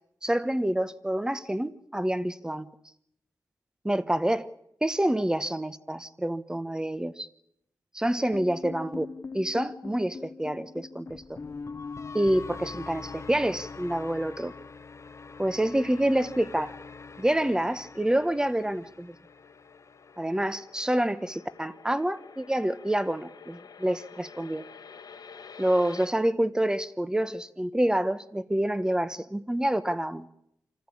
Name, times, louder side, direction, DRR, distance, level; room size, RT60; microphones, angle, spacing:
voice 1, 0.2-2.7 3.8-4.5 4.8-7.3 7.9-9.1 9.3-11.4 12.1-14.5 15.4-16.7 17.2-19.1 20.2-24.6 25.6-30.3, right 1 dB, 10° right, 1.1 m, -27 dB
sound 1, 8.3-20.5, left 4 dB, 45° left, 1.0 m, -43 dB
sound 2, 19.2-26.1, left 6 dB, 75° left, 1.7 m, -49 dB
26.5 x 14.5 x 8.6 m
cardioid pair, 80°, 7 cm